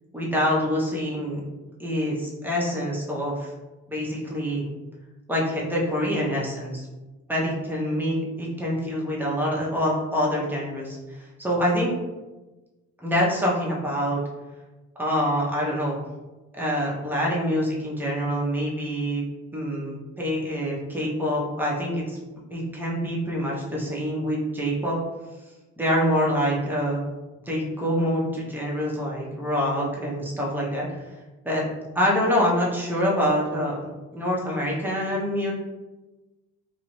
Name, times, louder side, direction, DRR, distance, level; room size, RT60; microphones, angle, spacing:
voice 1, 0.1-1.4 1.8-3.5 3.9-4.7 5.3-6.9 7.3-11.9 13.0-14.2 15.0-16.0 16.5-19.2 19.5-22.2 22.5-25.0 25.8-27.0 27.5-30.9 31.4-31.6 31.9-35.5, equal, 5° right, -5 dB, 0.7 m, -26 dB
2.5 x 2.0 x 2.9 m, 1.2 s
cardioid pair, 90°, 30 cm